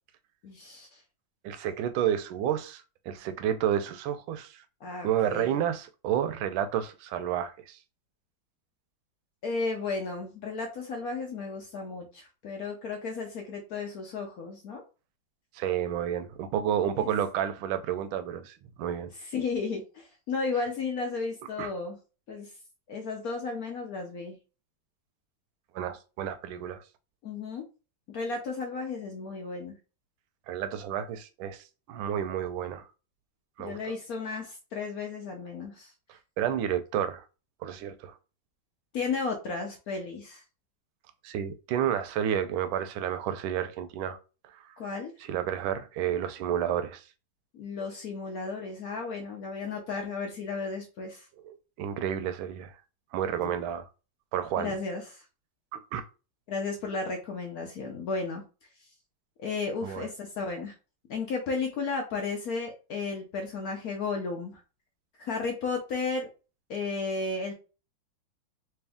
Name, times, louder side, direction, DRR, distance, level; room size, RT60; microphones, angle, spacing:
voice 1, 0.4-1.0 4.8-5.5 9.4-14.8 17.0-17.1 19.2-22.0 22.3-22.5 22.9-24.4 27.2-27.6 28.1-29.8 33.6-35.9 38.9-40.4 44.8-45.1 47.5-51.3 53.4-53.5 54.6-55.2 56.5-58.4 59.4-60.7 61.1-64.6 65.2-66.3 66.7-67.5, left 4 dB, 65° left, 0.9 m, -34 dB
voice 2, 1.4-4.6 5.0-7.8 15.5-19.1 21.6-21.7 25.7-26.8 30.5-32.9 33.6-33.8 36.4-37.2 37.6-38.1 41.2-44.2 45.3-47.0 51.4-52.7 53.1-53.9 54.3-54.8 55.7-56.0 59.8-60.1, right 9 dB, 85° right, 1.4 m, -30 dB
3.4 x 2.9 x 3.5 m
omnidirectional pair, 2.2 m